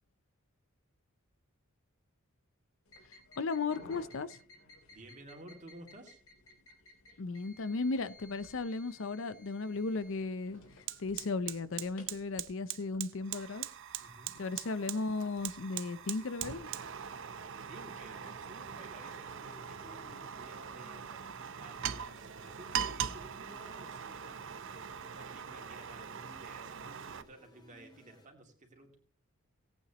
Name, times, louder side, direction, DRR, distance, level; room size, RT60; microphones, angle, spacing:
sound 1, 2.9-12.2, left 2 dB, 80° left, 3.0 m, -57 dB
voice 1, 3.4-4.4 7.2-13.6 14.4-16.7, left 3 dB, 60° left, 0.6 m, -36 dB
voice 2, 4.9-6.2 14.0-14.4 17.7-21.0 21.6-29.0, right 1 dB, 35° right, 2.6 m, -54 dB
Fire, 9.7-9.9 10.2-27.2, right 8 dB, 60° right, 0.7 m, -42 dB
sound 2, 14.6-28.2, left 1 dB, 20° left, 2.4 m, -61 dB
18.0 x 8.9 x 3.0 m
head